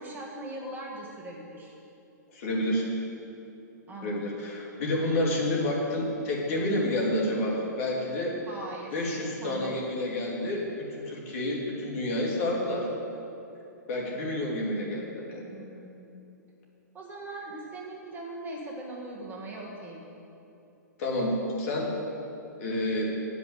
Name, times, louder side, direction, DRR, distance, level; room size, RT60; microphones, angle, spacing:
voice 1, 0.0-1.7 3.9-4.4 8.5-9.0 9.4-9.8 15.5-16.2 16.9-20.0, right 1 dB, 20° right, -3 dB, 1.6 m, -40 dB
voice 2, 2.3-2.9 4.0-8.4 8.9-12.9 13.9-15.5 21.0-21.9 22.6-23.1, left 1 dB, 50° left, -2 dB, 2.7 m, -29 dB
9.9 x 5.9 x 8.2 m, 2.8 s
hypercardioid pair, 120°, 10 cm